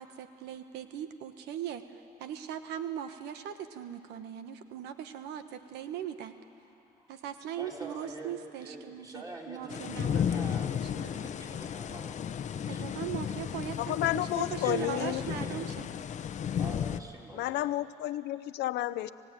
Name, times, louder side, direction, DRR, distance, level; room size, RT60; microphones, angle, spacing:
voice 1, 0.0-1.8 2.2-6.3 7.1-10.5 10.8-11.1 12.7-15.9, right 10 dB, 85° right, 9 dB, 1.1 m, -39 dB
voice 2, 6.7-7.1 7.5-12.2 12.5-12.8 14.6-15.6 16.6-17.7, right 2 dB, 20° right, -2 dB, 4.4 m, -45 dB
sound 1, 9.7-17.0, left 8 dB, 45° left, 0.8 m, -34 dB
voice 3, 13.8-15.2 17.3-19.1, left 14 dB, 80° left, 13 dB, 0.7 m, -31 dB
28.0 x 17.0 x 9.2 m, 2.7 s
cardioid pair, 110°, 17 cm